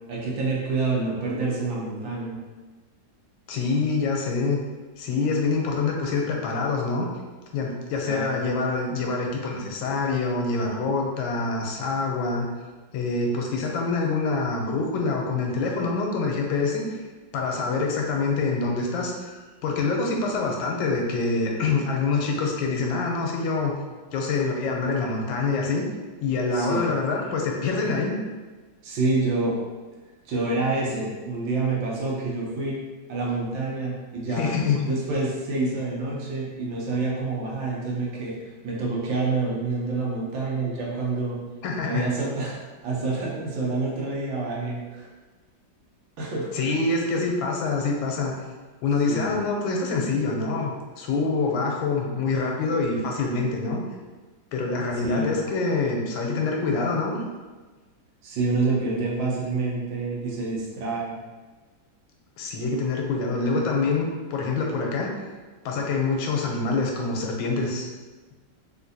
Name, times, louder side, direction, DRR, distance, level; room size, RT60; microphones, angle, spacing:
voice 1, 0.1-2.4 8.0-8.4 26.5-26.9 28.8-29.5 30.2-32.8 33.1-34.5 34.9-41.4 41.8-42.6 42.8-45.1 46.2-46.5 49.1-49.3 55.0-55.3 58.2-61.2, right 3 dB, 85° right, -4 dB, 1.6 m, -27 dB
voice 2, 3.5-4.6 5.0-7.0 7.5-12.5 12.9-17.0 17.3-23.7 24.1-25.8 26.2-28.2 34.4-34.8 41.6-42.1 46.5-48.4 48.8-53.8 54.5-57.2 62.4-65.1 65.6-67.9, left 3 dB, 90° left, 0 dB, 1.4 m, -25 dB
3.7 x 2.5 x 2.6 m, 1.3 s
omnidirectional pair, 2.1 m